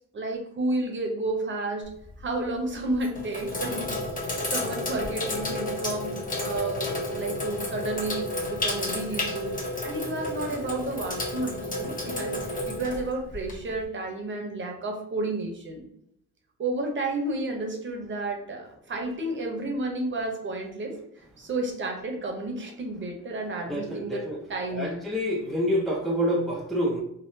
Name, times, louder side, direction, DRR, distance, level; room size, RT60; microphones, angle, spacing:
voice 1, 0.1-1.9 2.2-3.9 4.2-15.8 16.6-21.0 21.4-25.0, right 2 dB, 40° right, 2 dB, 0.8 m, -31 dB
Sink (filling or washing), 1.8-2.3 2.9-13.8, left 1 dB, 25° left, 1.0 m, -31 dB
voice 2, 23.7-24.4 24.7-27.0, equal, ahead, -2 dB, 0.5 m, -27 dB
3.6 x 2.1 x 2.6 m, 0.76 s
cardioid pair, 90°, 30 cm